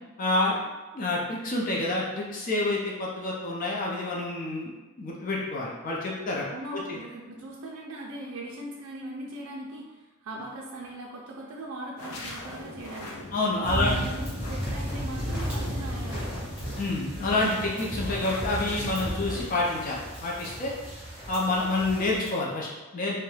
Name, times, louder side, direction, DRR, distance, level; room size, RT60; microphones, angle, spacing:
voice 1, 0.2-0.6 0.9-4.7 5.0-6.4 6.7-7.0 13.3-14.0 16.8-20.7 21.3-23.2, left 2 dB, 40° left, -3 dB, 0.4 m, -28 dB
voice 2, 6.5-13.3 13.7-16.4, right 1 dB, 85° right, -2 dB, 0.4 m, -39 dB
sound 1, 12.0-19.7, left 2 dB, 85° left, 0.6 m, -42 dB
sound 2, 13.6-22.3, equal, 5° right, 0.6 m, -34 dB
2.3 x 2.0 x 3.1 m, 1.2 s
head